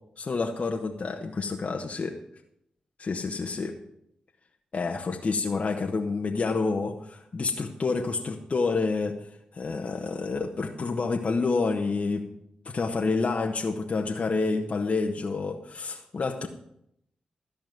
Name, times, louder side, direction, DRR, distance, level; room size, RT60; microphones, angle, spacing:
voice 1, 0.2-2.2 3.0-3.7 4.7-9.2 9.5-12.2 12.6-16.5, left 4 dB, 55° left, 2 dB, 1.1 m, -28 dB
13.0 x 5.1 x 9.0 m, 0.76 s
supercardioid pair, 45°, 3 cm